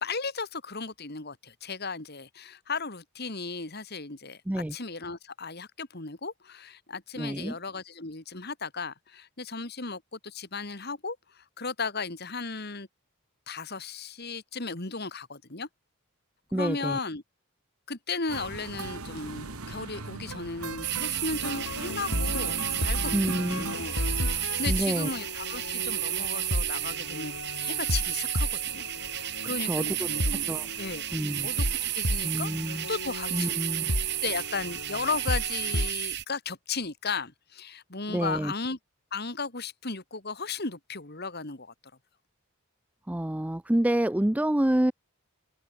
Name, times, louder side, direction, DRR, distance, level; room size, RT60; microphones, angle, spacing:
voice 1, 0.0-12.9 13.5-15.7 16.5-17.2 17.9-24.0 24.3-27.3 27.6-28.8 29.2-30.5 30.8-31.1 31.4-33.5 34.2-38.8 39.1-41.7, left 4 dB, 45° left, 2.2 m, -35 dB
voice 2, 7.2-7.5 16.5-17.0 23.1-23.7 24.7-25.1 29.7-30.1 30.5-30.7 31.1-31.5 32.2-32.9 33.3-33.9 38.1-38.5 43.1-44.9, right 1 dB, 5° right, 0.3 m, -28 dB
sound 1, 18.3-23.8, right 3 dB, 80° right, 2.1 m, -39 dB
sound 2, 20.8-36.2, right 15 dB, 50° right, 1.7 m, -32 dB
sound 3, 21.3-35.9, left 1 dB, 65° left, 3.0 m, -34 dB
open air
head